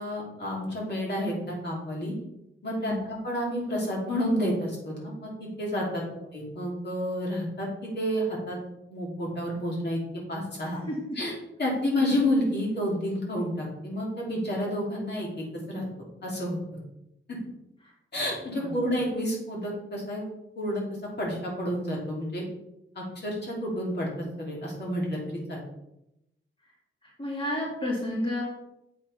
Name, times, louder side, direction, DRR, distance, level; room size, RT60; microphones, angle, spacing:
voice 1, 0.0-2.1 2.6-6.0 6.3-8.6 8.9-10.0 10.3-10.8 11.1-15.9 16.2-16.6 18.1-20.2 20.6-20.8 21.2-22.4 22.9-25.6, equal, 55° left, -3 dB, 2.9 m, -30 dB
voice 2, 10.9-11.2 18.5-18.8 27.0-28.4, left 1 dB, 25° left, -4 dB, 2.5 m, -32 dB
7.7 x 5.9 x 5.6 m, 0.85 s
wide cardioid pair, 170°, 21 cm